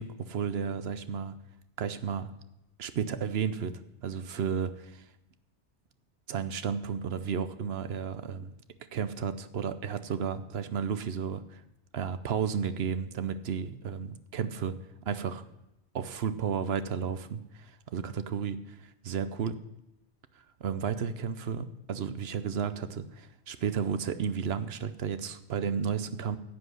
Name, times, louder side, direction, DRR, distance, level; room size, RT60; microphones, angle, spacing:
voice 1, 0.0-1.4 1.8-2.3 2.8-5.1 6.3-8.5 8.9-11.6 11.9-14.8 15.0-15.4 15.9-19.6 20.6-26.4, right 7 dB, 65° right, 12 dB, 0.9 m, -33 dB
10.5 x 8.0 x 6.3 m, 0.92 s
omnidirectional pair, 1.2 m